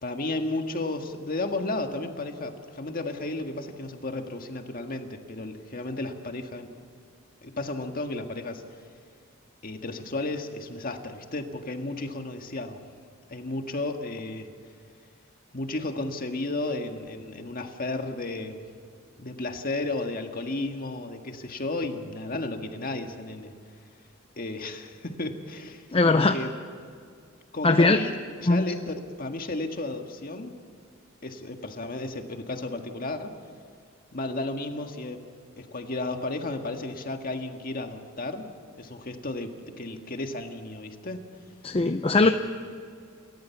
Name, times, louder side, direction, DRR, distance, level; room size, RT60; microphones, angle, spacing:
voice 1, 0.0-6.7 7.4-8.6 9.6-12.8 13.3-14.5 15.5-18.7 19.2-23.5 24.4-26.5 27.5-30.5 31.2-33.3 34.1-35.2 35.6-38.5 38.8-41.2 42.1-42.3, left 2 dB, 45° left, 5 dB, 1.8 m, -33 dB
voice 2, 25.9-26.4 27.6-28.0 28.5-28.6 41.6-42.3, left 3 dB, 30° left, 8 dB, 0.6 m, -20 dB
28.5 x 14.0 x 7.2 m, 2.3 s
head